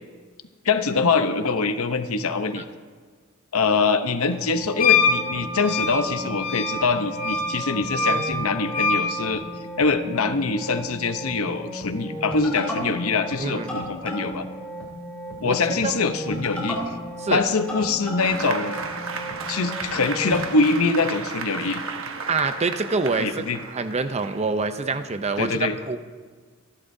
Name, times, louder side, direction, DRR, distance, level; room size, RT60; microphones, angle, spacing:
voice 1, 0.6-2.7 3.5-9.4 9.8-14.4 15.4-17.0 17.3-18.8 19.5-21.8 23.2-23.6 25.4-25.8, left 4 dB, 85° left, 9 dB, 0.8 m, -24 dB
sound 1, 4.3-20.4, equal, 5° left, 3.3 m, -35 dB
Wind instrument woodwind instrument, 4.8-9.1, left 5 dB, 45° left, 3.0 m, -24 dB
voice 2, 13.4-13.8 15.4-15.6 15.8-15.9 17.2-17.4 22.3-26.0, right 3 dB, 30° right, 10 dB, 0.6 m, -26 dB
Applause, 18.2-25.4, right 4 dB, 70° right, 1.1 m, -34 dB
27.0 x 11.5 x 2.7 m, 1.5 s
head